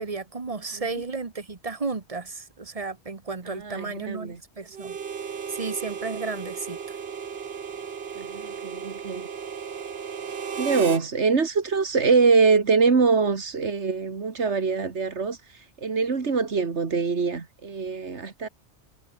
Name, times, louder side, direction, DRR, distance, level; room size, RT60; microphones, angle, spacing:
voice 1, 0.0-5.0 5.5-7.0, right 4 dB, 35° right, 1.3 m, -33 dB
voice 2, 3.5-4.4 8.2-9.3 10.6-18.5, right 4 dB, 90° right, 2.2 m, -24 dB
Harmonica, 4.7-11.1, right 7 dB, 65° right, 1.4 m, -35 dB
omnidirectional pair, 1.1 m